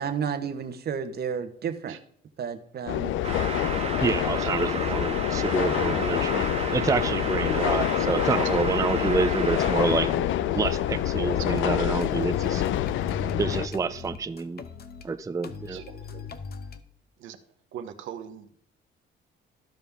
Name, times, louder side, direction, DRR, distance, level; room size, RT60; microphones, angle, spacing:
voice 1, 0.0-2.0 2.4-3.2, right 7 dB, 55° right, 9 dB, 1.1 m, -31 dB
sound 1, 2.9-13.7, left 11 dB, 75° left, 0.4 m, -26 dB
sound 2, 3.2-10.2, right 5 dB, 30° right, 1.3 m, -34 dB
voice 2, 4.0-10.1 10.5-12.6 13.4-14.6 15.0-15.8, right 4 dB, 15° right, 11 dB, 0.4 m, -28 dB
voice 3, 10.1-10.7 11.5-11.7 15.7-16.3 17.2-17.4 17.7-18.6, right 9 dB, 85° right, 7 dB, 0.9 m, -42 dB
sound 3, 11.4-11.6 12.0-15.1 15.4-16.8, left 4 dB, 50° left, 0.9 m, -38 dB
14.5 x 5.3 x 3.5 m, 0.64 s
cardioid pair, 90°, 20 cm